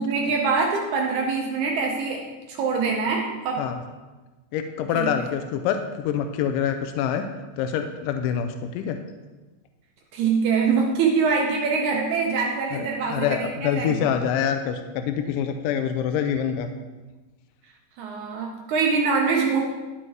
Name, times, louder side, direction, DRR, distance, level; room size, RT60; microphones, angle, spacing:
voice 1, 0.0-3.7 5.0-5.1 10.1-13.9 18.0-19.7, right 5 dB, 75° right, 1 dB, 1.8 m, -24 dB
voice 2, 4.5-7.2 7.6-9.0 12.7-16.7, left 8 dB, 80° left, 7 dB, 2.1 m, -26 dB
12.5 x 4.2 x 4.6 m, 1.2 s
omnidirectional pair, 4.1 m